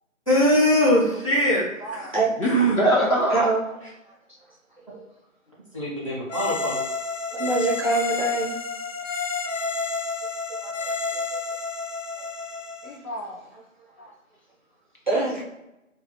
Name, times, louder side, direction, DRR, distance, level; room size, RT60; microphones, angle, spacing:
voice 1, 0.3-1.7 1.9-2.1 2.4-2.8 5.7-6.8, equal, 25° left, -9 dB, 0.7 m, -21 dB
voice 2, 1.5-2.1 2.4-2.5 2.8-3.4 12.8-13.4 14.0-14.1, equal, 85° left, -2 dB, 1.1 m, -25 dB
voice 3, 3.3-3.6 4.9-5.0 7.3-8.5 10.6-10.9 11.3-11.4 15.1-15.4, right 3 dB, 35° right, -6 dB, 0.6 m, -24 dB
sound 1, 6.3-13.0, left 4 dB, 65° left, 0.6 m, -30 dB
2.4 x 2.3 x 2.5 m, 0.93 s
figure-of-eight pair, 165°, 41 cm